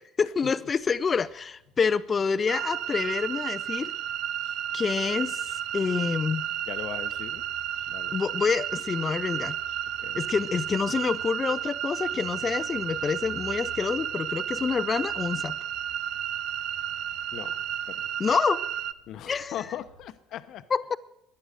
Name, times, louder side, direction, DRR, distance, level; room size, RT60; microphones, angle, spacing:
voice 1, 0.2-3.9 4.7-6.5 8.1-9.6 10.1-15.6 18.2-18.6 19.3-19.5 20.7-21.0, left 5 dB, 35° left, 0.5 m, -27 dB
sound 1, 0.6-20.1, left 2 dB, 85° right, 6.7 m, -55 dB
sound 2, 2.5-18.9, right 10 dB, 60° right, 0.5 m, -32 dB
voice 2, 6.7-7.4 7.9-8.2 10.0-10.3 17.3-17.6 17.9-18.0 19.1-20.6, left 11 dB, 55° left, 0.8 m, -39 dB
13.0 x 10.5 x 7.8 m
hypercardioid pair, 60°, 0 cm